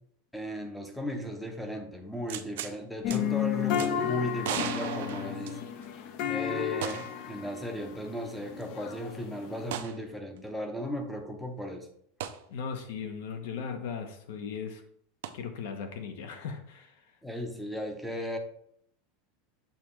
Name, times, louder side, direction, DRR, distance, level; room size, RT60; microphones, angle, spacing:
voice 1, 0.3-5.6 6.3-11.9 17.2-18.4, equal, 5° left, 5 dB, 0.6 m, -36 dB
sound 1, 2.3-2.8 3.1-3.2 3.7-3.9 4.4-5.9 6.8-7.3 7.6-7.7 9.7-10.0 12.2-12.4 15.2-15.3, right 10 dB, 80° right, 0.6 m, -36 dB
sound 2, 3.0-9.8, left 10 dB, 45° left, 0.5 m, -33 dB
voice 2, 12.5-14.8 15.3-17.1, left 6 dB, 70° left, 6 dB, 1.0 m, -38 dB
6.8 x 3.0 x 4.8 m, 0.69 s
supercardioid pair, 165°, 0 cm